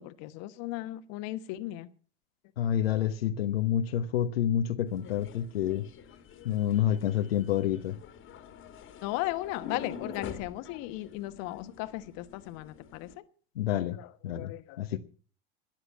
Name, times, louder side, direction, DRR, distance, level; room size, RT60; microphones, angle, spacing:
voice 1, 0.0-1.9 9.0-13.1 14.3-14.8, left 17 dB, 60° left, 1.3 m, -36 dB
voice 2, 2.6-5.9 6.4-8.0 13.5-14.0 14.2-15.0, left 10 dB, 85° left, 1.1 m, -28 dB
sound 1, 4.9-13.2, left 7 dB, 45° left, 1.9 m, -46 dB
13.0 x 9.9 x 7.4 m
hypercardioid pair, 80°, 29 cm